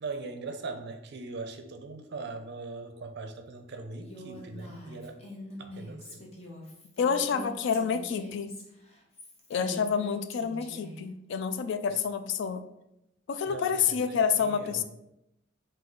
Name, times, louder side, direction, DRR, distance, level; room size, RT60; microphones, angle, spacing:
voice 1, 0.0-5.2 5.6-6.3 11.9-12.0 13.5-14.8, right 3 dB, 60° right, 6 dB, 0.5 m, -40 dB
Female speech woman speaking, 4.0-11.0, left 1 dB, 35° left, 0.8 m, -45 dB
voice 2, 7.0-8.5 9.5-12.6 13.3-14.8, left 6 dB, 65° left, 11 dB, 0.3 m, -28 dB
3.7 x 2.7 x 3.8 m, 0.86 s
head